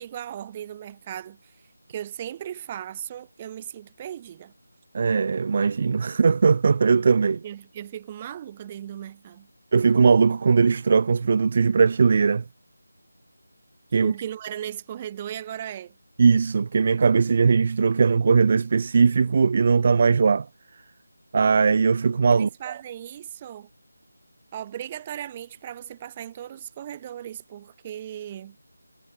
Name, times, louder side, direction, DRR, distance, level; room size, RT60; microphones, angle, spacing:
voice 1, 0.0-1.5 1.9-4.5 7.4-9.5 13.9-15.9 22.3-23.7 24.5-28.6, right 10 dB, 20° right, 4.1 m, -37 dB
voice 2, 4.9-7.4 9.7-12.4 13.9-14.1 16.2-20.5 21.3-22.5, right 5 dB, 35° right, 0.4 m, -19 dB
figure-of-eight pair, 165°, 0 cm